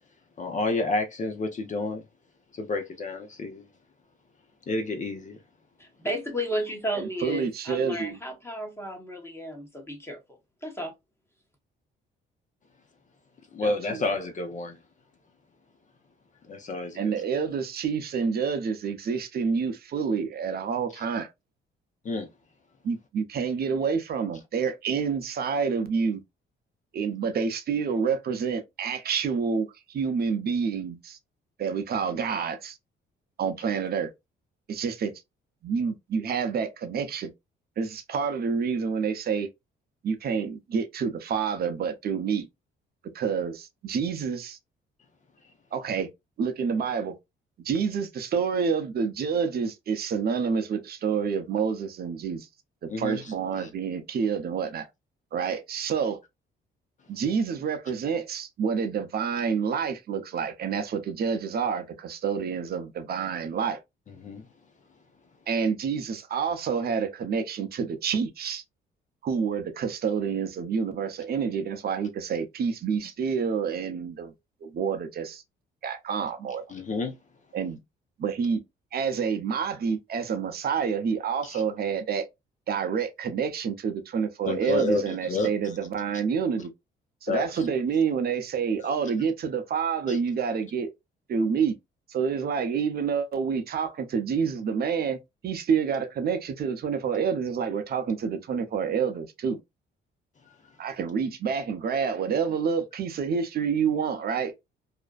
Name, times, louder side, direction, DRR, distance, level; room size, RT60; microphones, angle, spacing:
voice 1, 0.4-2.0 2.5-3.6 4.7-5.4 13.5-14.8 16.5-17.2 20.9-21.0 22.0-22.3 52.9-53.2 53.6-53.7 64.2-64.5 76.7-77.1 81.5-81.6 84.5-85.5 87.3-87.6 90.1-90.2, left 3 dB, 40° left, 0.6 m, -30 dB
voice 2, 5.8-10.2 10.6-10.9, equal, 10° left, 0.9 m, -33 dB
voice 3, 7.0-8.2 13.6-14.1 16.9-21.3 22.8-26.2 26.9-31.2 31.6-32.8 33.4-34.1 34.7-35.1 35.6-37.3 37.8-39.5 40.0-42.5 43.1-44.6 45.7-46.1 46.4-47.1 47.6-52.5 52.8-54.9 55.3-56.2 57.1-63.8 65.5-68.6 69.2-74.3 74.6-75.4 75.8-76.6 77.5-77.8 78.2-78.6 78.9-82.3 82.7-86.7 87.2-90.9 91.3-91.7 92.1-95.2 95.4-99.6 100.8-104.7, right 6 dB, 50° right, 0.6 m, -28 dB
2.5 x 2.1 x 2.3 m
cardioid pair, 90°, 20 cm